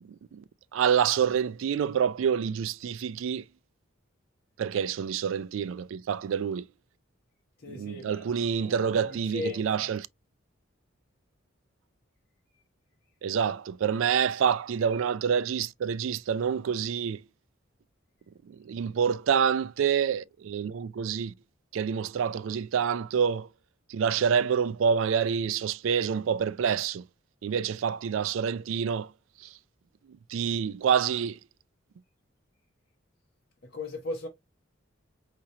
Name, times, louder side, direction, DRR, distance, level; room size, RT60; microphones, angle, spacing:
voice 1, 0.0-0.4 0.7-3.4 4.6-6.7 7.7-10.1 13.2-17.2 18.5-21.3 21.7-23.5 23.9-27.1 27.4-29.1 29.4-29.5 30.1-31.4, right 7 dB, 75° right, 0.3 m, -27 dB
voice 2, 7.6-8.3 8.6-9.9 33.6-34.3, left 3 dB, 50° left, 0.9 m, -37 dB
4.8 x 2.9 x 2.8 m
head